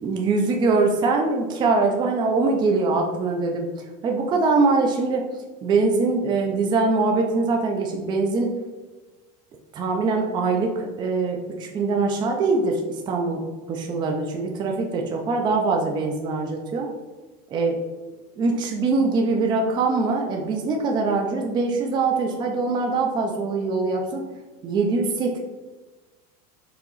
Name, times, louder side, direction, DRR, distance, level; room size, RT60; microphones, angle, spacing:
voice 1, 0.0-8.5 9.7-16.9 17.5-17.8 18.4-24.2 24.6-25.4, right 3 dB, 25° right, 2 dB, 0.5 m, -23 dB
4.7 x 2.9 x 3.9 m, 1.2 s
supercardioid pair, 150°, 20 cm